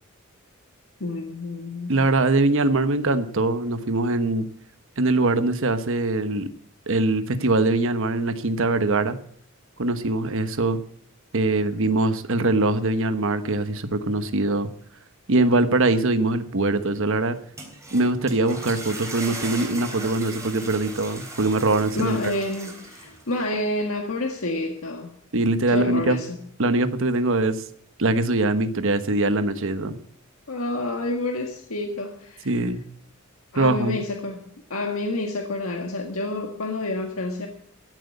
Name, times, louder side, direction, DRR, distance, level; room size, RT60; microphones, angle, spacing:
voice 1, 1.0-2.0 21.9-25.1 25.7-26.5 30.5-32.6 33.5-37.5, left 2 dB, 75° left, 2 dB, 1.7 m, -29 dB
voice 2, 1.9-4.5 5.0-6.5 6.9-9.2 9.8-10.8 11.3-14.7 15.3-17.4 17.9-22.3 25.3-26.2 26.6-27.6 28.0-30.0 32.5-32.8 33.6-34.0, right 2 dB, 65° right, 10 dB, 1.1 m, -22 dB
sound 1, 17.3-23.4, right 2 dB, 15° right, 3.4 m, -38 dB
14.5 x 7.9 x 8.1 m, 0.64 s
head